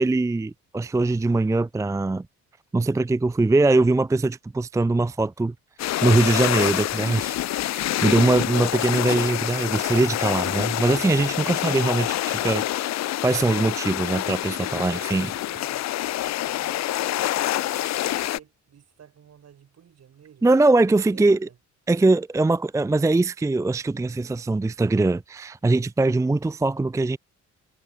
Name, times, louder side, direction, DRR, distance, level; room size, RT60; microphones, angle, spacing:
voice 1, 0.0-2.2 2.7-5.5 6.0-7.4 7.7-12.9 13.2-15.3 20.4-21.5 21.9-27.2, right 2 dB, 10° right, 0.5 m, -22 dB
sound 1, 5.8-18.4, left 14 dB, 60° left, 0.6 m, -26 dB
voice 2, 14.6-15.9 16.5-20.5 21.1-21.6, right 8 dB, 55° right, 5.6 m, -50 dB
cardioid pair, 90°, 30 cm